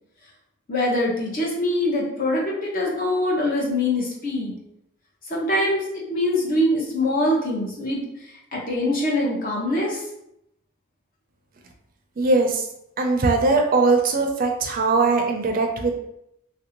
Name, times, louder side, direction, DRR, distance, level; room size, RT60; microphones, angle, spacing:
voice 1, 0.7-4.5 5.3-8.0 8.5-10.0, left 1 dB, 40° left, -3 dB, 0.8 m, -23 dB
voice 2, 12.2-12.6 13.0-16.0, right 3 dB, 45° right, 3 dB, 0.4 m, -20 dB
3.2 x 2.5 x 2.9 m, 0.79 s
head